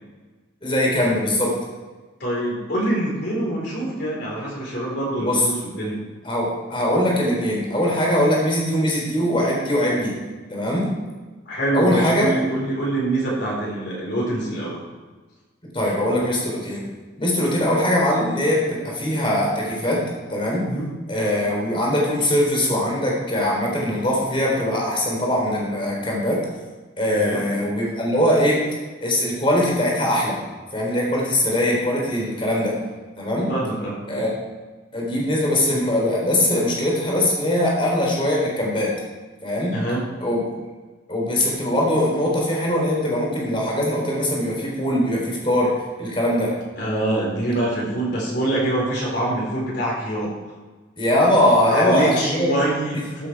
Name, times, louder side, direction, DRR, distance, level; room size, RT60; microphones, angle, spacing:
voice 1, 0.6-1.5 5.2-5.4 6.2-10.2 10.5-10.9 11.7-12.3 15.7-16.9 17.2-20.0 20.3-20.6 21.1-26.4 27.0-28.6 29.0-30.4 30.7-32.8 33.2-33.5 34.1-34.3 34.9-39.0 39.4-39.7 40.2-40.4 41.1-45.7 46.0-46.5 51.0-52.5, left 1 dB, 25° left, -3 dB, 3.7 m, -21 dB
voice 2, 2.2-6.0 11.5-14.8 20.6-20.9 27.1-27.4 33.5-34.0 39.7-40.0 46.8-50.3 51.6-53.3, right 1 dB, 55° left, -4 dB, 4.1 m, -25 dB
14.5 x 8.2 x 4.6 m, 1.3 s
head